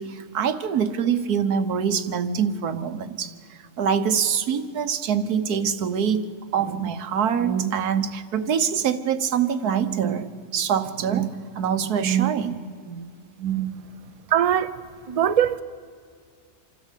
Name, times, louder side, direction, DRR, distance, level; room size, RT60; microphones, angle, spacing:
voice 1, 0.0-13.1 13.4-13.8, right 7 dB, 85° right, 1.5 m, -25 dB
voice 2, 14.3-14.7 15.1-15.6, right 10 dB, 50° right, 0.4 m, -20 dB
27.0 x 12.5 x 8.3 m
omnidirectional pair, 1.6 m